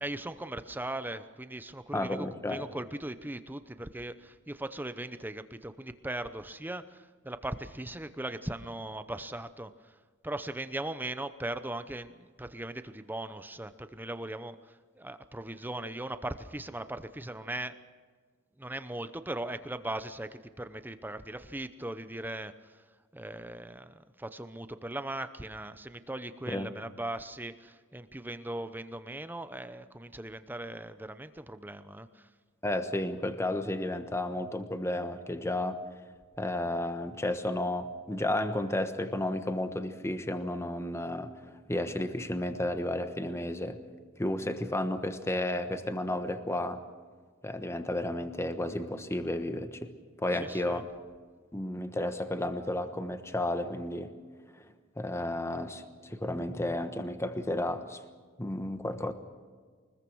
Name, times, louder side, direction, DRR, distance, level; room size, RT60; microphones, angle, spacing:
voice 1, 0.0-9.9 10.2-17.8 18.6-22.8 23.1-32.3 50.3-50.8, right 1 dB, 10° right, 11 dB, 0.8 m, -39 dB
voice 2, 1.9-2.7 26.5-26.7 32.6-35.8 36.4-43.8 44.2-46.8 47.4-49.9 50.2-50.9 51.5-54.1 54.6-54.7 55.0-58.0 58.4-59.1, left 1 dB, 15° left, 8 dB, 1.2 m, -32 dB
24.0 x 21.0 x 6.2 m, 1.5 s
head